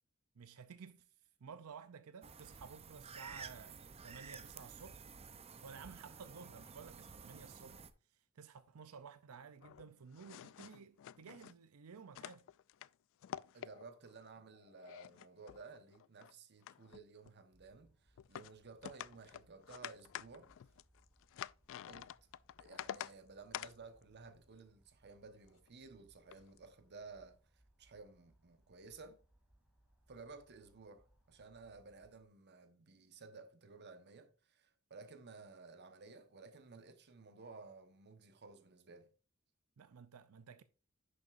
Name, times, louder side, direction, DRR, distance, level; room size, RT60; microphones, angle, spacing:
voice 1, 0.4-1.1 1.4-5.0 5.6-12.4 39.8-40.6, right 6 dB, 90° right, 0.5 m, -54 dB
sound 1, 2.2-7.9, right 5 dB, 30° right, 0.6 m, -52 dB
sound 2, 9.6-11.5 12.1-12.9 13.2-14.1 14.5-16.3 16.6-17.3 18.2-18.5 18.8-23.1 23.5-23.7 25.5-25.7 26.3-26.6, left 10 dB, 65° left, 0.3 m, -49 dB
voice 2, 13.5-20.5 21.9-22.1 22.6-29.2 30.1-39.1, right 4 dB, 50° right, 1.1 m, -55 dB
sound 3, 17.5-32.2, right 1 dB, 5° right, 2.7 m, -72 dB
10.5 x 6.7 x 2.5 m
head